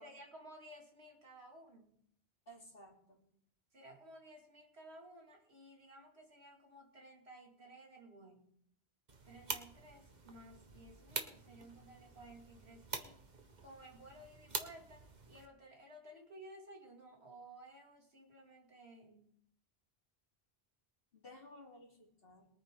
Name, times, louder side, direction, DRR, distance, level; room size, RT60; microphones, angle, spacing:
voice 1, 0.0-2.0 3.7-8.5 9.2-13.2 13.6-19.3, right 1 dB, 90° right, 0 dB, 3.1 m, -56 dB
voice 2, 2.5-3.2 21.1-22.5, equal, 65° left, -1 dB, 3.3 m, -56 dB
sound 1, 9.1-15.5, right 3 dB, 45° right, 1.4 m, -46 dB
22.5 x 9.4 x 3.8 m, 0.67 s
omnidirectional pair, 1.1 m